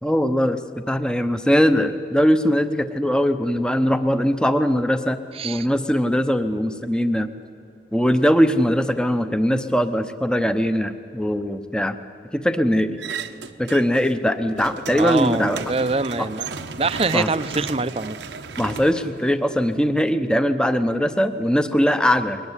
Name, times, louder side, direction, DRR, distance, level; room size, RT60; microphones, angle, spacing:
voice 1, 0.0-5.2 5.4-7.3 7.9-12.0 12.3-13.0 13.6-15.6 16.2-16.3 17.1-17.3 18.6-22.4, equal, 5° left, 9 dB, 0.8 m, -21 dB
voice 2, 5.4-5.7 14.9-16.5 16.8-18.1, right 3 dB, 30° right, 13 dB, 0.6 m, -24 dB
sound 1, 13.0-14.1 14.4-19.8, right 5 dB, 75° right, 1.0 m, -35 dB
22.5 x 19.5 x 9.8 m, 2.5 s
head